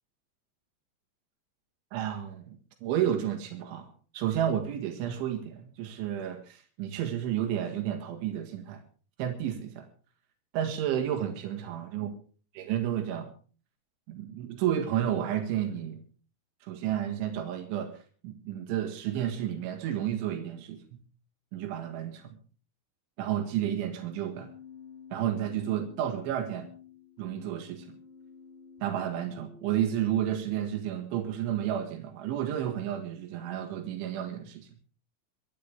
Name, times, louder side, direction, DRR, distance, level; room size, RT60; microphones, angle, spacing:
voice 1, 1.9-3.9 4.1-8.8 9.2-9.9 10.5-12.1 12.5-13.3 14.1-16.0 16.6-21.0 21.5-22.4 23.2-24.5 25.1-26.7 27.2-27.9 28.8-34.7, right 10 dB, 90° right, 4 dB, 4.2 m, -31 dB
Keyboard (musical), 24.2-30.2, left 6 dB, 70° left, 4.2 m, -51 dB
24.0 x 11.5 x 3.6 m, 0.39 s
omnidirectional pair, 5.3 m